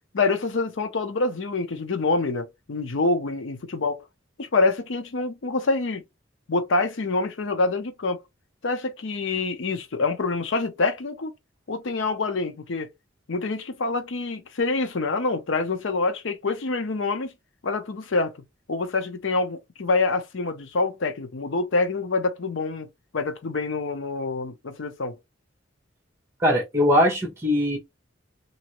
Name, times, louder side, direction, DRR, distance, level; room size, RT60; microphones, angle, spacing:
voice 1, 0.1-4.0 4.4-6.0 6.5-8.2 8.6-11.3 11.7-12.9 13.3-17.3 17.6-18.3 18.7-22.9 23.1-25.2, left 3 dB, 70° left, 0.6 m, -26 dB
voice 2, 26.4-27.8, left 1 dB, 15° right, 1.2 m, -21 dB
2.9 x 2.7 x 2.9 m
head